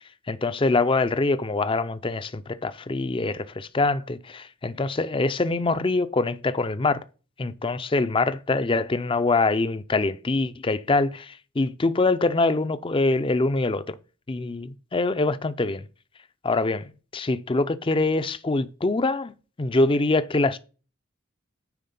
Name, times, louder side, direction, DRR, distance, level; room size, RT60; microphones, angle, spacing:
voice 1, 0.3-7.0 7.4-13.9 14.3-15.8 16.4-16.9 17.1-19.3 19.6-20.6, left 3 dB, 25° left, 0.5 m, -24 dB
9.4 x 4.1 x 5.4 m
head